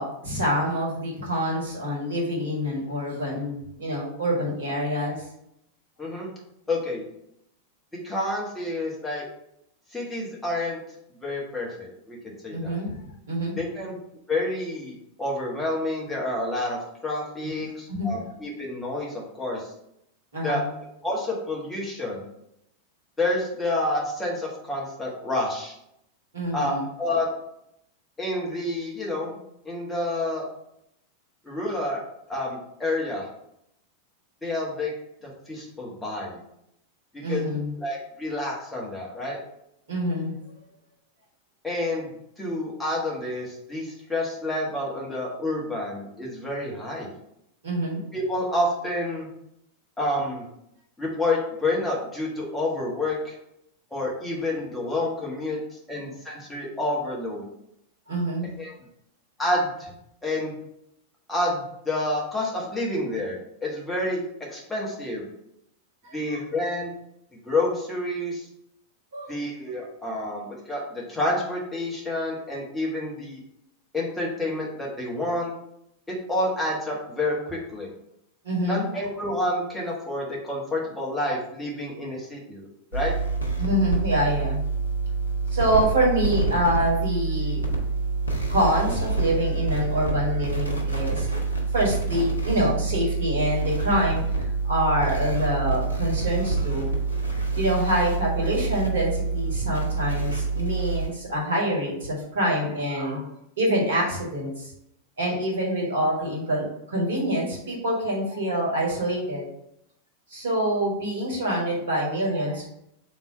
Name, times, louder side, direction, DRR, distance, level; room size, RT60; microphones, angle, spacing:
voice 1, 0.0-5.2 12.5-12.9 13.3-13.6 17.6-18.1 20.3-20.7 26.3-26.8 37.2-37.7 39.9-40.4 47.6-48.0 58.1-58.5 66.0-66.4 69.1-69.3 78.4-78.8 83.6-84.6 85.5-87.6 88.5-91.3 91.7-94.2 94.7-96.9 97.5-103.3 103.6-104.7 105.2-109.5 110.3-112.6, equal, 65° right, -2 dB, 1.6 m, -26 dB
voice 2, 6.0-6.3 6.7-7.0 8.0-9.2 9.9-10.8 11.2-12.8 13.6-14.0 14.3-19.7 20.4-20.6 21.0-22.3 23.2-25.7 26.5-27.3 28.2-29.4 29.6-30.4 31.4-32.0 32.3-33.3 34.4-34.9 35.2-36.4 37.1-37.4 37.8-39.4 41.6-42.1 42.4-47.1 48.1-49.3 50.0-50.5 51.0-53.3 53.9-55.6 55.9-57.4 58.6-58.7 59.4-59.9 60.2-60.5 61.3-64.2 64.5-65.3 66.1-66.9 67.3-68.5 69.3-73.4 73.9-75.5 76.1-77.9 78.7-82.7 82.9-83.1, left 1 dB, 10° left, -4 dB, 1.4 m, -29 dB
sound 1, 82.9-101.1, right 4 dB, 80° left, 0.8 m, -27 dB
3.7 x 3.1 x 4.5 m, 0.78 s
figure-of-eight pair, 90°, 0 cm